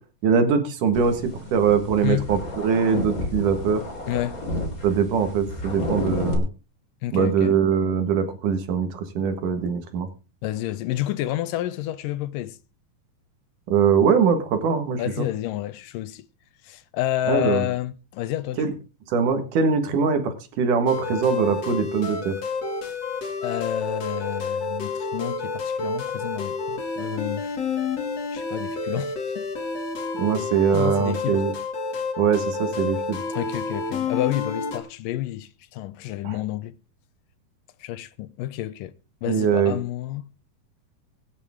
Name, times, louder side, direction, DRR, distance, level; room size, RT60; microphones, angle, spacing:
voice 1, 0.2-3.8 4.8-6.5 7.1-10.1 13.7-15.3 17.3-17.6 18.6-18.7 19.1-22.3 30.2-31.5 32.2-33.2 36.2-36.3 39.3-39.8, right 6 dB, 70° right, 3.0 m, -22 dB
sound 1, 0.9-6.4, left 1 dB, 25° left, 3.4 m, -31 dB
voice 2, 4.1-4.4 7.0-7.5 9.2-9.3 10.4-12.6 15.0-16.3 16.6-18.7 23.4-27.6 28.3-29.5 30.7-31.5 33.3-36.8 37.8-38.9 39.2-40.3, left 14 dB, 80° left, 2.3 m, -29 dB
sound 2, 20.9-34.8, left 4 dB, 50° left, 3.4 m, -29 dB
24.0 x 8.6 x 3.6 m
omnidirectional pair, 4.0 m